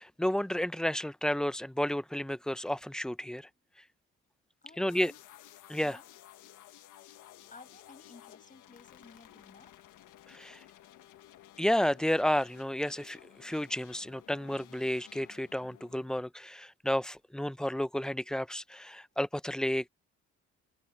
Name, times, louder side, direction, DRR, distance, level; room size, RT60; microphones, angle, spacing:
voice 1, 0.0-3.5 4.8-5.1 5.7-6.0 10.3-10.6 11.6-19.9, left 1 dB, ahead, 0.6 m, -31 dB
voice 2, 4.6-5.2 5.8-6.1 7.5-9.8, left 3 dB, 25° left, 6.5 m, -55 dB
sound 1, 4.9-16.3, left 13 dB, 85° left, 1.6 m, -55 dB
cardioid pair, 90°, 30 cm